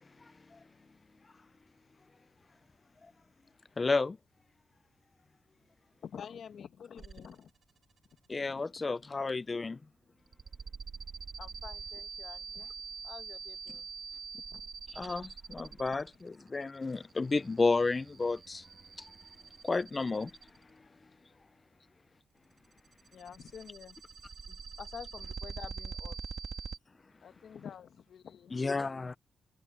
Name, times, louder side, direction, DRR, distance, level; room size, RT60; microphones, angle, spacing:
voice 1, 3.8-4.2 8.3-9.8 14.9-18.6 19.6-20.3 28.5-29.2, left 3 dB, 35° left, 0.8 m, -31 dB
voice 2, 6.0-7.5 8.5-9.2 11.4-12.7 13.0-13.9 14.3-14.7 23.1-24.0 24.5-26.2 27.2-28.8, left 7 dB, 70° left, 1.4 m, -49 dB
sound 1, 7.0-7.6 7.9-8.4 10.3-20.7 22.6-26.8, right 5 dB, 55° right, 3.6 m, -45 dB
supercardioid pair, 55°, 0 cm